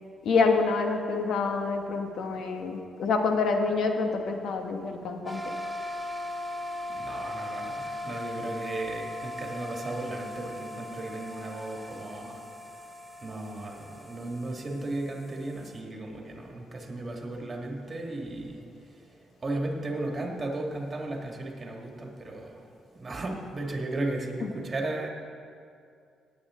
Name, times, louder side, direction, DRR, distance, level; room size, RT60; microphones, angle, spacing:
voice 1, 0.2-5.4 24.4-24.5, left 4 dB, 70° left, 4 dB, 1.3 m, -27 dB
sound 1, 5.3-15.8, left 1 dB, 5° right, 1.2 m, -39 dB
voice 2, 7.0-12.4 13.2-18.6 19.4-22.6 23.0-25.1, right 2 dB, 30° right, 1 dB, 2.0 m, -35 dB
17.5 x 8.9 x 3.8 m, 2.4 s
cardioid pair, 90°, 0 cm